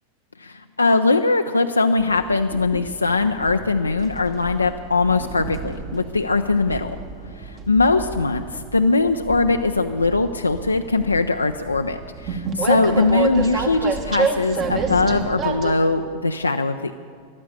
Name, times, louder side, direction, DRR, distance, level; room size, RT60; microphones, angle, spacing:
voice 1, 0.4-7.0 7.4-17.0, left 3 dB, 80° left, 5 dB, 0.4 m, -21 dB
Train, 2.0-15.8, right 5 dB, 35° right, 1.4 m, -30 dB
15.0 x 12.0 x 6.9 m, 2.1 s
figure-of-eight pair, 90°, 0 cm